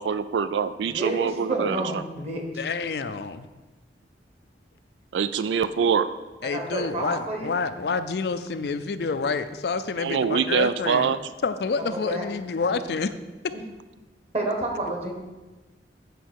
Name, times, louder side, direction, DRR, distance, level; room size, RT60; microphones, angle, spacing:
voice 1, 0.0-1.8 5.1-6.1 10.0-11.2, right 6 dB, 85° right, 13 dB, 0.3 m, -24 dB
voice 2, 0.9-2.6 6.4-7.5 11.8-12.2 13.5-13.6 14.3-15.1, right 1 dB, 35° right, 2 dB, 1.4 m, -30 dB
voice 3, 2.6-3.5 6.4-11.1 11.4-13.1 13.4-13.5, left 4 dB, 65° left, 11 dB, 0.4 m, -28 dB
8.1 x 4.7 x 6.3 m, 1.2 s
head